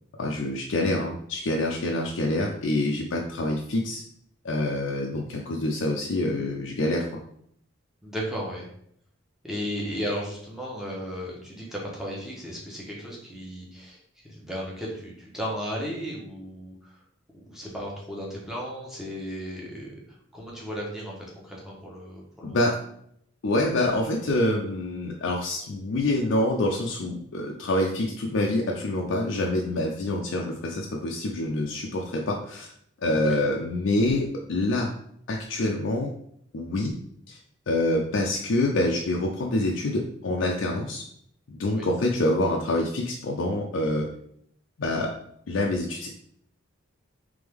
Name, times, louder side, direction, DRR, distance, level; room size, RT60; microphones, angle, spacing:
voice 1, 0.2-4.0 4.4-7.2 22.4-22.7 23.4-32.7 33.0-34.9 35.3-36.1 36.5-36.9 37.3-37.4 37.7-41.0 41.5-44.1 44.8-45.1 45.5-46.1, left 1 dB, 70° left, 0 dB, 0.5 m, -26 dB
voice 2, 8.0-8.7 9.4-17.0 17.3-20.0 20.3-22.7 33.3-33.4 41.7-41.9, equal, ahead, -4 dB, 0.9 m, -35 dB
3.5 x 3.4 x 3.4 m, 0.69 s
head